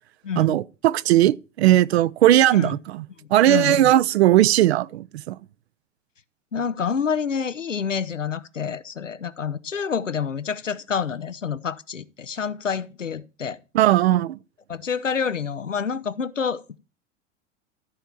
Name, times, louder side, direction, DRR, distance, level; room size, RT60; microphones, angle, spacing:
voice 1, 0.4-3.0 3.3-5.4 13.7-14.4, right 13 dB, 60° right, 0.6 m, -18 dB
voice 2, 3.5-3.9 6.5-13.6 14.7-16.8, left 6 dB, 85° left, 0.8 m, -28 dB
13.5 x 4.5 x 6.9 m
figure-of-eight pair, 85°, 37 cm